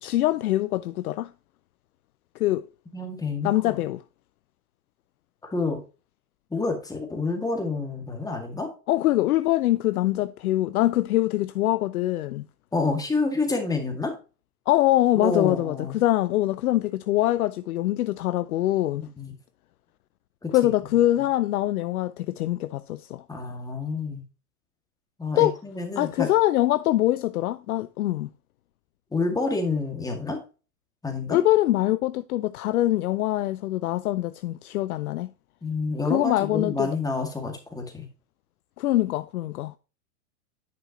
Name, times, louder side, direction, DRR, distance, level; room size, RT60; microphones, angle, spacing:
voice 1, 0.0-1.3 2.4-2.7 3.4-4.0 8.9-12.5 14.7-19.1 20.5-23.2 25.4-25.6 26.0-28.3 31.3-35.3 36.1-36.9 38.8-39.8, left 15 dB, 65° left, 0.6 m, -24 dB
voice 2, 2.9-3.8 5.4-5.8 6.5-8.7 12.7-14.1 15.2-16.0 19.0-19.3 20.4-20.5 23.3-24.2 25.2-26.3 29.1-30.4 31.0-31.4 35.6-38.1, left 3 dB, 10° left, 2.1 m, -28 dB
10.5 x 5.5 x 3.0 m
hypercardioid pair, 120°, 47 cm